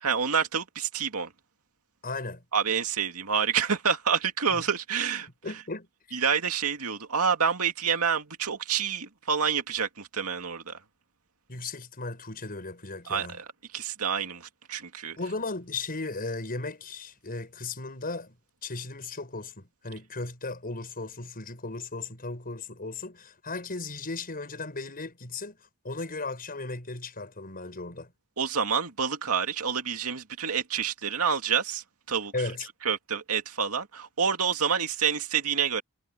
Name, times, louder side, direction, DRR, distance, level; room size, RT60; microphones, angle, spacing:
voice 1, 0.0-1.3 2.5-5.3 6.1-10.8 13.1-13.5 13.7-15.2 28.4-32.3 32.8-35.8, right 6 dB, 75° right, 2.4 m, -28 dB
voice 2, 2.0-2.4 4.5-4.6 5.4-6.2 11.5-13.4 15.2-18.4 18.6-25.6 25.8-28.1 32.3-32.7, left 3 dB, 40° left, 6.2 m, -36 dB
head